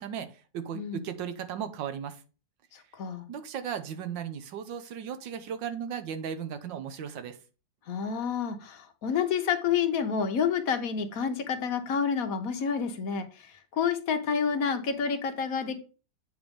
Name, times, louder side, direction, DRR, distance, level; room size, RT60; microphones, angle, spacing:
voice 1, 0.0-2.2 3.3-7.4, right 8 dB, 85° right, 10 dB, 1.5 m, -36 dB
voice 2, 0.7-1.0 2.7-3.3 7.9-15.8, left 6 dB, 60° left, 7 dB, 1.2 m, -29 dB
7.9 x 3.5 x 5.1 m, 0.34 s
omnidirectional pair, 1.9 m